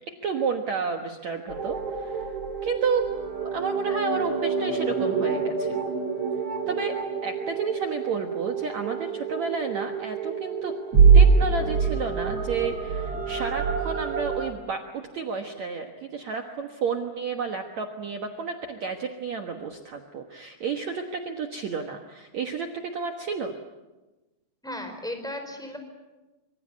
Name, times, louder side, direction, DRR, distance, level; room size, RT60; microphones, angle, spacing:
voice 1, 0.2-2.3 2.6-3.1 3.4-5.8 6.7-7.0 7.2-10.7 11.1-14.8 15.1-23.5, right 5 dB, 60° right, 4 dB, 2.0 m, -31 dB
sound 1, 1.5-14.5, right 5 dB, 40° right, 2.9 m, -25 dB
voice 2, 24.6-25.8, left 1 dB, ahead, 5 dB, 4.3 m, -35 dB
25.5 x 25.0 x 8.3 m, 1.1 s
omnidirectional pair, 4.8 m